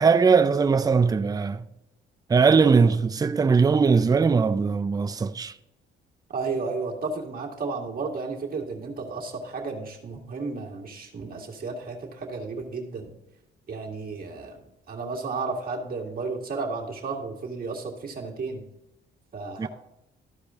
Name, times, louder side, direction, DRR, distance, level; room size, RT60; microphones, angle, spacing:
voice 1, 0.0-1.7 2.3-5.5 19.6-19.7, right 5 dB, 20° right, 0.4 m, -20 dB
voice 2, 6.3-13.1 13.7-14.6 14.9-18.6 19.3-19.7, right 4 dB, 50° right, 1.9 m, -33 dB
13.5 x 5.0 x 3.6 m
cardioid pair, 90°, 20 cm